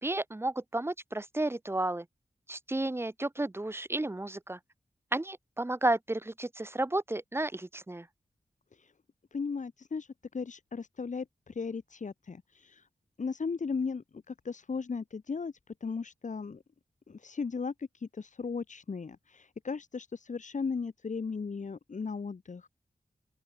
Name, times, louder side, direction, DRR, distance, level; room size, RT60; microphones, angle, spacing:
voice 1, 0.0-2.0 2.5-4.6 5.1-8.1, right 2 dB, 20° right, 1.3 m, -32 dB
voice 2, 9.3-12.9 13.2-15.5 15.8-16.6 17.1-22.7, left 5 dB, 65° left, 5.3 m, -36 dB
open air
wide cardioid pair, 75°, 13 cm